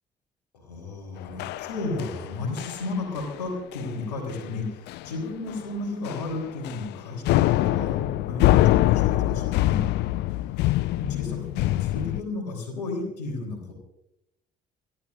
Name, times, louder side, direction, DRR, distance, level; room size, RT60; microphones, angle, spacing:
voice 1, 0.5-9.9 11.0-13.7, left 3 dB, 75° left, 2 dB, 3.7 m, -33 dB
sound 1, 1.4-2.3 2.6-2.9 3.2-3.4 3.7-3.9 4.3-4.4 4.9-5.2 5.5-5.6 6.1-6.9 7.3-12.2, left 16 dB, 55° left, 0.5 m, -24 dB
29.5 x 12.5 x 2.6 m, 0.83 s
figure-of-eight pair, 45°, 21 cm